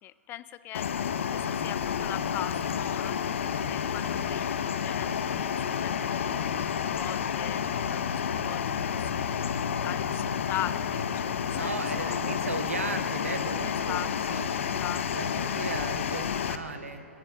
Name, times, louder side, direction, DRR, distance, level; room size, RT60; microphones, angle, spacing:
voice 1, 0.0-0.9 1.3-6.4 6.7-12.2 13.6-14.5 14.8-15.0, left 13 dB, 30° left, 15 dB, 0.5 m, -40 dB
sound 1, 0.7-16.6, left 8 dB, 65° left, 0.7 m, -30 dB
voice 2, 11.5-14.6 15.1-17.1, right 4 dB, 85° right, 9 dB, 1.0 m, -36 dB
25.5 x 10.0 x 3.6 m, 2.9 s
figure-of-eight pair, 110°, 7 cm